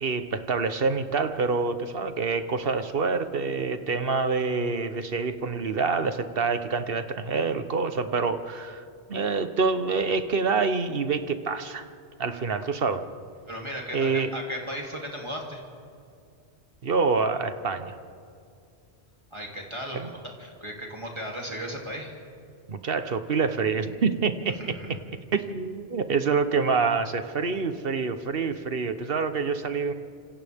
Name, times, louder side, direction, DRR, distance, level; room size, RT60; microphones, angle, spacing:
voice 1, 0.0-8.8 9.1-11.9 12.2-13.0 13.9-14.3 16.8-18.0 19.9-20.1 22.7-24.5 25.3-29.9, right 4 dB, 55° right, 10 dB, 1.2 m, -26 dB
voice 2, 13.5-15.6 19.3-22.1 24.6-25.0, equal, 25° right, -2 dB, 3.1 m, -36 dB
29.5 x 26.5 x 3.6 m, 2.4 s
omnidirectional pair, 1.2 m